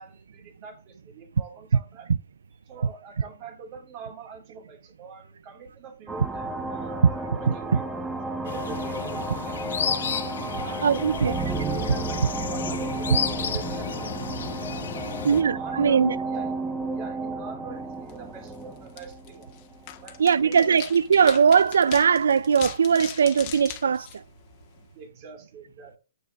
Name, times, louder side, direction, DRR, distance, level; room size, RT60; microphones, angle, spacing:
voice 1, 0.0-2.1 2.7-8.1 8.4-10.0 10.6-14.2 14.9-16.6 16.9-19.6 20.0-20.8 24.9-26.0, right 5 dB, 30° right, 2.6 m, -44 dB
sound 1, 6.1-20.2, right 2 dB, 10° right, 0.9 m, -32 dB
voice 2, 7.5-7.8 10.8-11.3 15.3-16.2 20.2-24.2, right 6 dB, 90° right, 0.3 m, -20 dB
sound 2, 8.5-15.4, left 7 dB, 75° left, 1.6 m, -32 dB
sound 3, 18.0-24.9, left 12 dB, 35° left, 1.3 m, -42 dB
9.2 x 8.8 x 2.4 m
hypercardioid pair, 155°, 0 cm